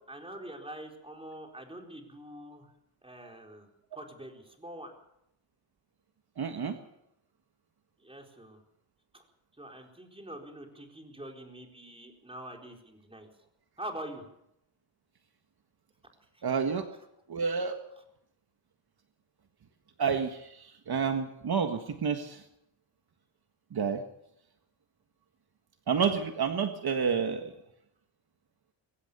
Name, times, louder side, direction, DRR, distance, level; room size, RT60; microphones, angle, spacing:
voice 1, 0.1-2.7 3.0-4.9 8.0-8.6 9.1-9.2 9.6-13.3 13.8-14.3 16.3-16.4, right 1 dB, 10° right, 2 dB, 4.4 m, -44 dB
voice 2, 6.4-6.8 16.4-16.9 17.3-17.8 20.0-22.4 23.7-24.0 25.9-27.5, right 6 dB, 55° right, 6 dB, 1.6 m, -29 dB
23.0 x 17.0 x 6.9 m, 0.79 s
wide cardioid pair, 110°, 45 cm